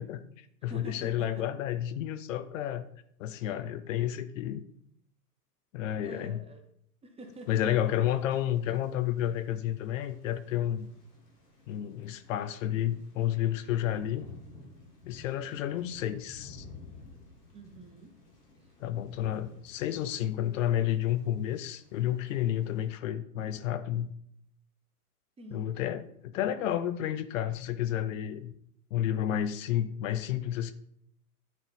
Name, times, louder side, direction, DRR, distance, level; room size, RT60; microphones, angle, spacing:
voice 1, 0.0-2.9 3.2-4.6 5.7-6.4 7.5-10.9 11.7-14.3 15.1-16.7 18.8-24.1 25.5-28.5 28.9-30.7, left 11 dB, 55° left, 12 dB, 0.6 m, -31 dB
voice 2, 0.7-1.5 6.0-6.6 7.0-7.7 17.5-18.1 18.6-18.7 25.4-25.8, right 1 dB, 15° right, 5 dB, 0.7 m, -47 dB
Thunder / Rain, 7.2-22.9, left 3 dB, 85° left, 2.3 m, -54 dB
9.3 x 4.0 x 3.5 m, 0.71 s
hypercardioid pair, 105°, 46 cm